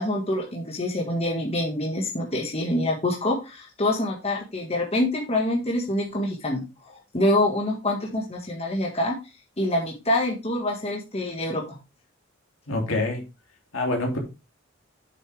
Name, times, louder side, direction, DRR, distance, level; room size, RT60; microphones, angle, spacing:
voice 1, 0.0-9.1 9.6-11.8, left 1 dB, 30° left, 1.7 m, -26 dB
voice 2, 12.7-13.2 13.7-14.2, left 2 dB, 70° left, 2.8 m, -25 dB
7.8 x 6.5 x 3.4 m
head